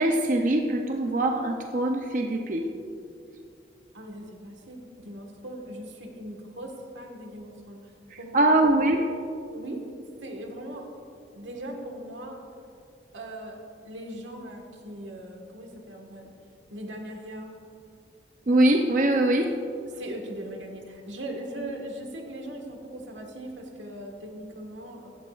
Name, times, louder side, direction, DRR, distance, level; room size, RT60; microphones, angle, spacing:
voice 1, 0.0-2.7 8.1-9.1 18.5-19.5, right 1 dB, 45° right, 3 dB, 0.6 m, -23 dB
voice 2, 3.9-7.9 8.2-8.7 9.5-9.8 10.2-10.9 11.3-12.4 13.1-13.6 13.8-16.3 16.7-17.5 20.0-25.1, right 1 dB, 85° right, 2 dB, 1.6 m, -39 dB
16.5 x 12.5 x 2.5 m, 2.4 s
head